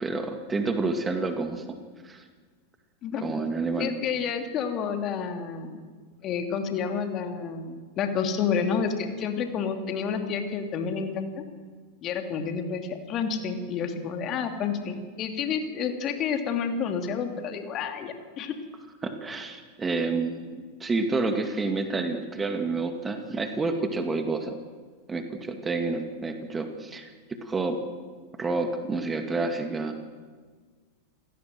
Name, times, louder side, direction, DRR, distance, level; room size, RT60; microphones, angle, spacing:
voice 1, 0.0-1.6 2.0-2.2 3.2-3.9 19.0-24.6 25.1-27.1 27.4-27.8 28.4-30.2, right 3 dB, 15° right, 6 dB, 2.2 m, -29 dB
voice 2, 3.8-5.8 6.2-11.4 12.0-18.5, left 6 dB, 35° left, 5 dB, 2.9 m, -29 dB
28.5 x 17.0 x 7.7 m, 1.5 s
figure-of-eight pair, 90°, 0 cm